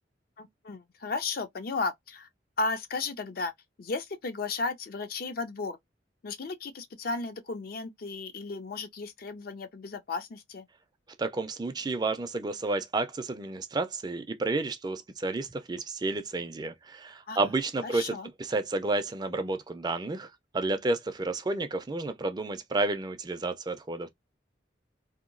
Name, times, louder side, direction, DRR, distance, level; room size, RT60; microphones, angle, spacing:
voice 1, 0.4-2.3 2.6-3.5 3.8-5.8 6.2-10.7 17.3-17.4 17.8-18.3, left 3 dB, 55° left, 0.5 m, -34 dB
voice 2, 11.2-20.3 20.5-24.1, right 2 dB, 25° right, 0.4 m, -31 dB
2.8 x 2.2 x 2.5 m
head